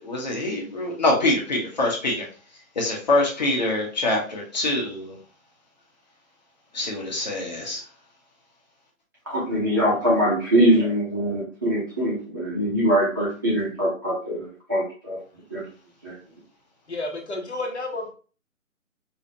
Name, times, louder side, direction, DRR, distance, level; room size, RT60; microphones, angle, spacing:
voice 1, 0.0-2.2 2.7-5.2 6.7-7.8, left 2 dB, 30° left, -1 dB, 1.1 m, -24 dB
voice 2, 9.3-15.2 15.5-15.6 16.0-16.1, equal, 15° right, -8 dB, 0.8 m, -23 dB
voice 3, 16.9-18.1, left 2 dB, 50° left, 3 dB, 1.0 m, -31 dB
4.8 x 2.8 x 2.7 m, 0.38 s
figure-of-eight pair, 150°, 42 cm